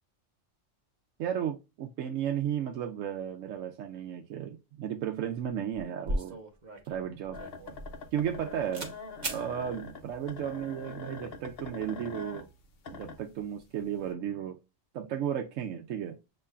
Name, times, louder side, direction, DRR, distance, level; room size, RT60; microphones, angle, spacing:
voice 1, 1.2-6.4 6.9-7.4 8.1-8.9 9.3-12.5 12.9-14.6 14.9-16.2, right 9 dB, 80° right, 1.0 m, -34 dB
sound 1, 5.3-5.5 5.7-8.4 8.7-8.9 9.2-9.4, right 1 dB, 40° right, 1.0 m, -37 dB
sound 2, 7.3-13.6 14.0-14.1, left 4 dB, 55° left, 0.9 m, -44 dB
6.8 x 3.0 x 2.3 m
omnidirectional pair, 1.3 m